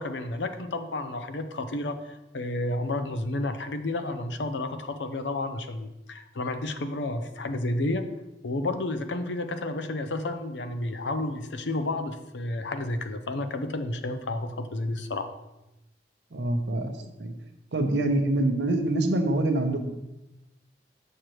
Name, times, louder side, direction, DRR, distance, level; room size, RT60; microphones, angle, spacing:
voice 1, 0.0-8.0 8.4-15.2, left 2 dB, 85° left, 9 dB, 0.6 m, -31 dB
voice 2, 16.3-17.3 17.7-19.9, right 2 dB, 75° right, 6 dB, 0.8 m, -25 dB
6.6 x 6.4 x 3.0 m, 0.96 s
head